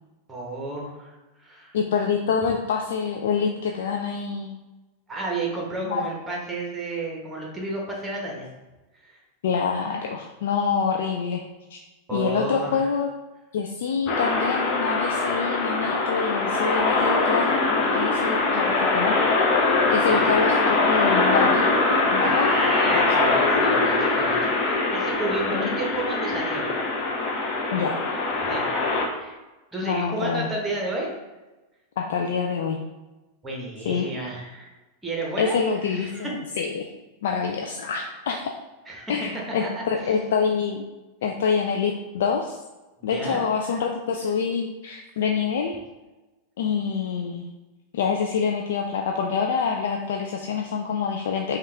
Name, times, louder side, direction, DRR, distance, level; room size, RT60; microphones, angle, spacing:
voice 1, 0.3-1.8 5.1-8.5 9.0-9.2 12.1-12.9 20.0-20.4 22.2-24.4 24.6-26.7 28.4-28.7 29.0-29.4 29.7-31.1 33.4-34.7 35.0-35.6 35.9-36.3 38.9-39.1 39.6-40.2 43.0-43.4 43.7-43.8, right 2 dB, 10° right, -1 dB, 1.2 m, -32 dB
voice 2, 1.7-4.6 5.8-6.1 9.4-11.4 11.7-11.8 12.1-13.1 13.5-19.4 19.9-21.8 22.1-22.5 22.9-23.0 25.5-25.7 27.7-28.0 29.8-30.5 32.0-32.8 33.9-34.1 35.4-36.9 37.2-38.5 39.1-40.8 41.2-42.6 43.0-45.8 46.6-47.5 47.9-51.6, left 6 dB, 60° left, 2 dB, 0.4 m, -26 dB
sound 1, 14.1-29.1, left 3 dB, 40° left, 0.8 m, -22 dB
5.3 x 2.5 x 3.4 m, 1.1 s
figure-of-eight pair, 90°, 0 cm